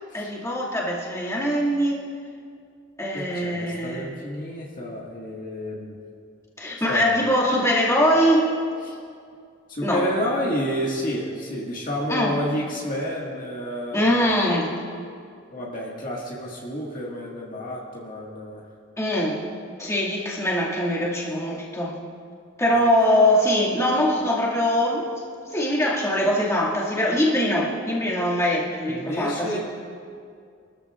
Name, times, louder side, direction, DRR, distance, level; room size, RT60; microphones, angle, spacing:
voice 1, 0.1-2.1 3.0-4.1 6.6-8.5 9.8-10.1 12.1-12.4 13.9-14.7 19.0-19.4 19.8-22.0 22.6-25.1 25.5-29.6, equal, 15° left, -6 dB, 2.2 m, -22 dB
voice 2, 3.1-6.0 6.9-7.1 8.9-9.0 9.7-14.1 15.5-18.7 22.7-22.9 28.9-29.6, equal, 45° left, -4 dB, 1.8 m, -30 dB
23.5 x 13.5 x 2.5 m, 2.3 s
head